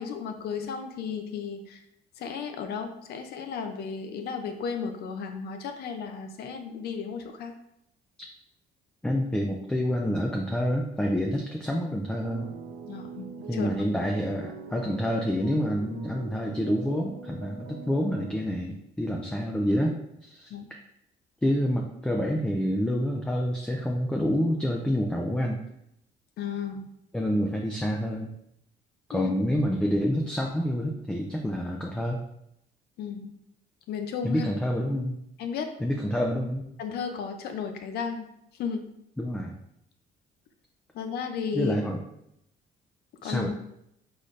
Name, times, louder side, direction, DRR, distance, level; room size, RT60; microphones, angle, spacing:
voice 1, 0.0-1.8 2.2-7.5 12.9-13.7 20.5-20.6 26.4-26.9 29.1-29.3 33.0-33.3 33.9-34.5 35.4-35.7 36.8-38.3 38.6-38.9 40.9-41.7 43.2-43.5, left 6 dB, 70° left, 6 dB, 0.7 m, -34 dB
voice 2, 9.0-12.5 13.5-20.5 21.4-25.6 27.1-28.3 29.1-32.2 34.2-35.2 35.8-36.6 39.2-39.6 41.5-42.0 43.2-43.5, equal, 5° left, 0 dB, 0.4 m, -28 dB
sound 1, 12.2-18.3, right 5 dB, 70° right, 1.0 m, -43 dB
3.9 x 3.9 x 3.2 m, 0.78 s
cardioid pair, 110°, 17 cm